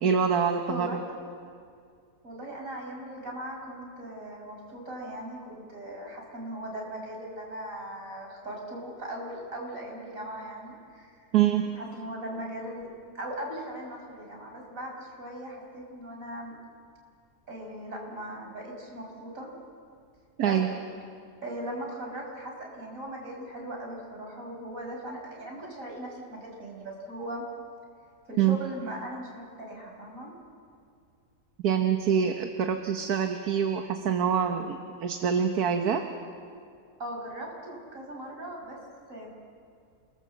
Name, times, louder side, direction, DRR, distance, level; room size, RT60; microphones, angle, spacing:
voice 1, 0.0-1.0 11.3-11.6 20.4-20.7 28.4-28.6 31.6-36.0, right 8 dB, 70° right, 5 dB, 1.6 m, -25 dB
voice 2, 0.7-1.1 2.2-11.2 11.6-12.9 13.2-16.6 17.5-19.5 20.4-20.6 21.4-27.4 28.3-30.3 37.0-38.8 39.1-39.3, right 1 dB, 50° right, -1 dB, 5.6 m, -39 dB
29.0 x 19.5 x 7.5 m, 2.3 s
omnidirectional pair, 1.7 m